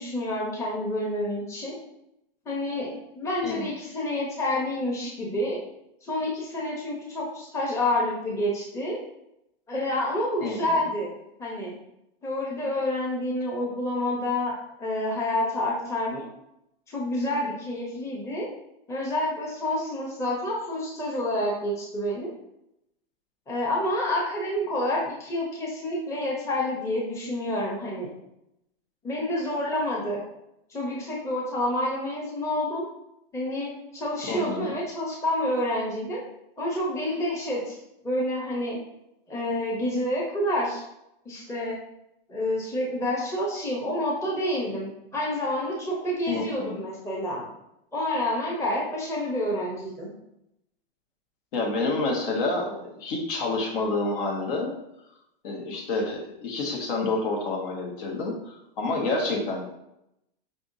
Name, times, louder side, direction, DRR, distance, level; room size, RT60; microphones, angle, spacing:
voice 1, 0.0-1.7 2.5-5.6 6.0-9.0 9.7-11.1 11.4-11.8 12.2-16.2 16.9-18.5 18.9-22.3 23.5-28.1 29.0-30.2 30.7-32.9 33.3-36.2 36.6-37.8 38.0-38.8 39.3-40.8 41.2-41.8 42.3-47.4 47.9-50.1, left 1 dB, 10° left, -4 dB, 0.9 m, -28 dB
voice 2, 10.4-10.7 34.3-34.7 46.3-46.8 51.5-54.7 55.4-59.6, left 3 dB, 60° left, 0 dB, 1.4 m, -28 dB
5.1 x 3.5 x 2.7 m, 0.83 s
hypercardioid pair, 125°, 30 cm